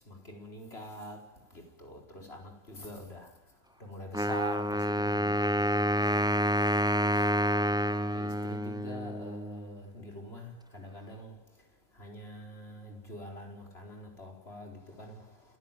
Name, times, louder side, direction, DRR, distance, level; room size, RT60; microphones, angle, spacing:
voice 1, 0.1-3.3 3.8-6.4 7.0-7.2 7.8-11.4 12.0-15.2, equal, 50° left, 4.8 m, -44 dB
Wind instrument woodwind instrument, 4.1-9.8, equal, 5° right, 0.6 m, -28 dB
27.0 x 15.5 x 9.1 m
omnidirectional pair, 1.3 m